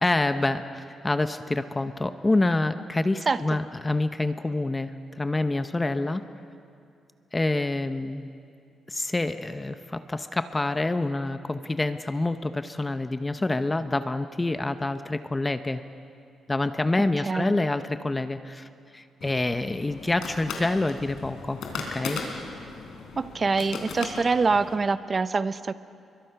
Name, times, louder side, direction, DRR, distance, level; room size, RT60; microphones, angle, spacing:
voice 1, 0.0-6.2 7.3-8.3 8.9-15.8 16.5-21.6 21.9-22.2, left 2 dB, 20° left, 10 dB, 0.8 m, -27 dB
sound 1, 19.2-24.8, left 4 dB, 85° left, 3.9 m, -37 dB
voice 2, 23.2-25.7, right 4 dB, 35° right, 13 dB, 0.7 m, -25 dB
29.5 x 23.0 x 5.9 m, 2.5 s
cardioid pair, 105°, 0 cm